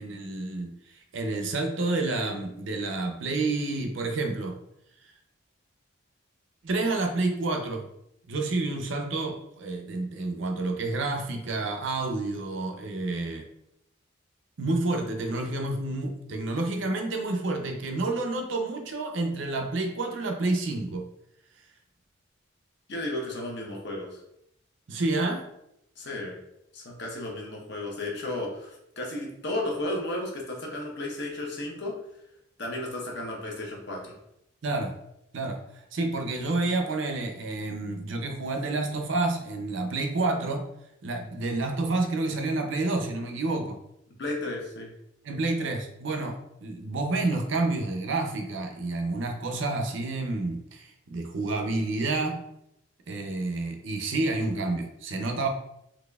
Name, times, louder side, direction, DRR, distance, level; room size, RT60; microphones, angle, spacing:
voice 1, 0.0-4.5 6.6-7.9 8.3-13.4 14.6-21.0 24.9-25.5 34.6-34.9 35.3-40.7 41.0-43.8 45.2-52.5 53.1-55.5, right 2 dB, 65° right, 4 dB, 0.5 m, -29 dB
voice 2, 22.9-24.2 26.0-26.4 26.7-32.0 32.6-34.2 44.2-44.9, left 1 dB, 55° left, -1 dB, 0.9 m, -33 dB
4.0 x 3.0 x 2.3 m, 0.80 s
head